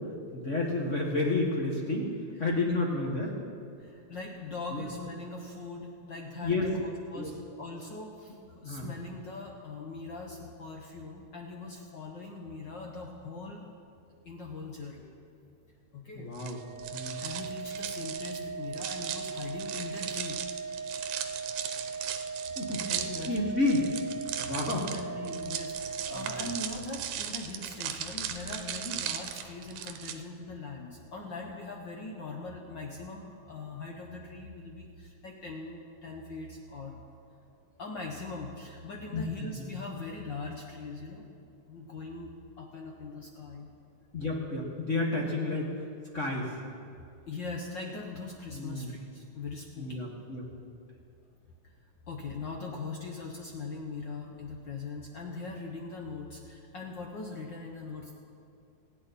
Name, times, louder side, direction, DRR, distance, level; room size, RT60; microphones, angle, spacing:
voice 1, 0.0-3.3 4.7-4.9 6.4-6.7 7.2-7.3 8.6-8.9 16.1-16.6 16.9-17.2 22.5-22.8 23.3-23.9 24.4-24.8 26.1-26.5 39.1-39.7 44.1-45.6 46.1-46.5 48.5-48.9 49.8-50.5, left 2 dB, 35° left, -2 dB, 1.2 m, -31 dB
voice 2, 3.9-6.8 7.1-7.3 7.6-8.4 8.6-13.6 14.2-15.1 15.9-16.3 17.2-20.6 22.9-23.5 24.7-36.9 37.8-41.2 41.7-42.3 42.6-43.7 45.5-45.6 47.3-50.0 52.1-58.1, left 3 dB, 70° left, 0 dB, 1.1 m, -41 dB
sound 1, 16.3-30.1, right 10 dB, 80° right, 2.2 m, -38 dB
Organ, 16.5-27.2, right 5 dB, 30° right, 1.4 m, -39 dB
27.0 x 9.7 x 4.2 m, 2.4 s
omnidirectional pair, 3.5 m